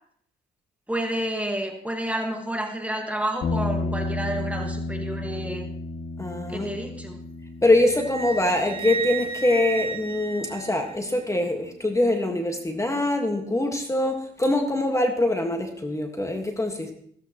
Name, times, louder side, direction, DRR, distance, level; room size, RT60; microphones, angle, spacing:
voice 1, 0.9-5.7 6.5-7.2, right 1 dB, 5° right, 3 dB, 1.7 m, -30 dB
sound 1, 3.4-11.7, left 2 dB, 65° left, 2.1 m, -33 dB
voice 2, 6.2-6.7 7.6-16.9, left 1 dB, 15° left, 4 dB, 1.6 m, -24 dB
Wind instrument woodwind instrument, 7.8-11.2, right 6 dB, 30° right, 1.5 m, -34 dB
15.0 x 14.0 x 3.0 m, 0.64 s
cardioid pair, 90°, 20 cm